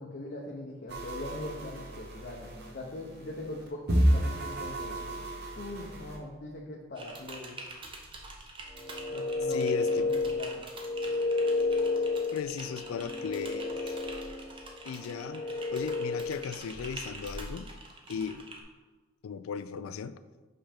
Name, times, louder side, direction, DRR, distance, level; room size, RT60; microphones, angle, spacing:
voice 1, 0.0-5.1 5.6-7.6 9.1-9.7 10.0-10.7, left 2 dB, 45° left, -1 dB, 0.6 m, -41 dB
sound 1, 0.9-6.2, equal, 50° right, 0.9 m, -31 dB
Typing, 7.0-18.6, right 2 dB, 25° right, 0.6 m, -45 dB
sound 2, 8.7-16.6, left 3 dB, 10° left, 0.9 m, -32 dB
voice 2, 9.5-10.1 12.3-14.0 14.8-15.4 15.7-17.7 18.1-18.4 19.2-20.2, left 6 dB, 80° left, 13 dB, 0.3 m, -36 dB
5.6 x 5.6 x 3.4 m, 1.3 s
head